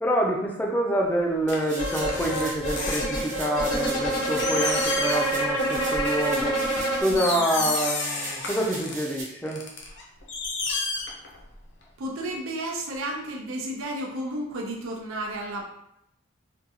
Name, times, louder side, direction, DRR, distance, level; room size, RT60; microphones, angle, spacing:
voice 1, 0.0-6.6 7.0-9.6, right 1 dB, 10° left, -1 dB, 0.4 m, -26 dB
sound 1, 1.5-3.5 4.0-4.1 4.4-5.4 5.7-6.0 6.6-6.7 7.1-8.9 9.5-11.5 11.8-11.9, left 3 dB, 55° left, 0.6 m, -31 dB
sound 2, 1.5-9.2, right 2 dB, 35° right, 0.9 m, -39 dB
sound 3, 1.8-7.0, right 1 dB, 90° left, 1.0 m, -27 dB
voice 2, 7.1-7.7 10.6-10.7 12.0-15.7, right 1 dB, 75° right, 0 dB, 0.5 m, -33 dB
3.7 x 2.3 x 2.8 m, 0.78 s
head